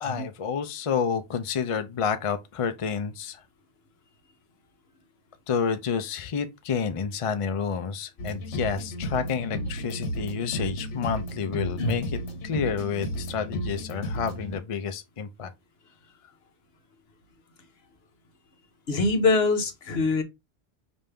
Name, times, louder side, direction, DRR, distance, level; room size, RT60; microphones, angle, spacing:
voice 1, 0.0-3.4 5.5-12.1 12.4-15.5, left 6 dB, 45° left, 0.4 m, -29 dB
sound 1, 8.2-14.6, equal, 80° left, 1.2 m, -33 dB
voice 2, 18.9-20.2, left 3 dB, 65° left, 1.1 m, -23 dB
5.3 x 2.6 x 3.3 m
omnidirectional pair, 1.2 m